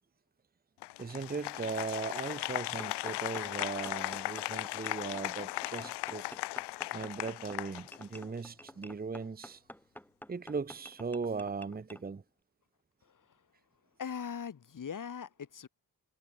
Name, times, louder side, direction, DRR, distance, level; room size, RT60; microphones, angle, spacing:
Applause, 0.8-8.4, left 18 dB, 85° left, 0.6 m, -38 dB
voice 1, 1.0-6.2 6.9-9.6 10.3-12.2, right 4 dB, 25° right, 1.0 m, -38 dB
sound 1, 2.8-12.0, equal, 5° left, 5.1 m, -50 dB
voice 2, 14.0-15.7, left 7 dB, 50° left, 2.6 m, -40 dB
supercardioid pair, 60°, 39 cm